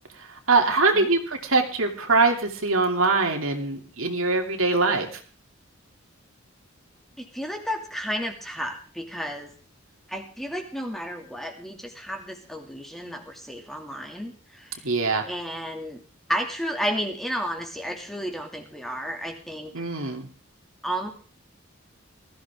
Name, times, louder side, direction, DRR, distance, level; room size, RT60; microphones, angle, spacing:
voice 1, 0.5-5.1 14.8-15.2 19.7-20.3, right 3 dB, 80° right, 3 dB, 2.9 m, -22 dB
voice 2, 7.3-9.5 10.1-14.9 15.3-16.0 16.3-20.1 20.8-21.1, equal, ahead, 2 dB, 2.5 m, -32 dB
20.0 x 14.5 x 3.7 m, 0.39 s
head